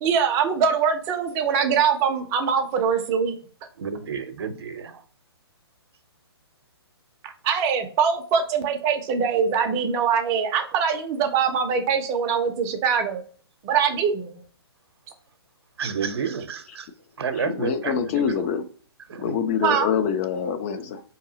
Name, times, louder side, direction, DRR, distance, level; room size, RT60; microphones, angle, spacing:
voice 1, 0.0-3.4 7.2-13.2 13.6-14.4 19.6-19.9, right 6 dB, 25° right, 6 dB, 0.5 m, -23 dB
voice 2, 3.8-5.0 15.8-16.9 17.2-18.0 19.1-19.3, right 6 dB, 70° right, 9 dB, 0.7 m, -30 dB
voice 3, 17.5-18.7 19.2-21.0, left 7 dB, 30° left, 8 dB, 0.5 m, -25 dB
4.6 x 2.9 x 2.7 m, 0.44 s
hypercardioid pair, 140°, 14 cm